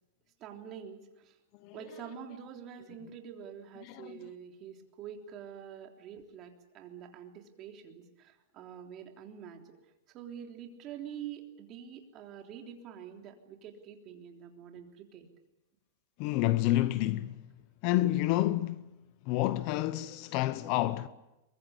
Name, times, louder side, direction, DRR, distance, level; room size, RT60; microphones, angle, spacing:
voice 1, 0.4-1.4 1.7-9.8 10.1-15.3, right 8 dB, 30° right, 3.5 m, -46 dB
voice 2, 3.8-4.3 16.2-17.4 17.8-18.9 19.2-21.1, left 16 dB, 40° left, 0.9 m, -29 dB
23.5 x 22.0 x 8.3 m
supercardioid pair, 155°, 0 cm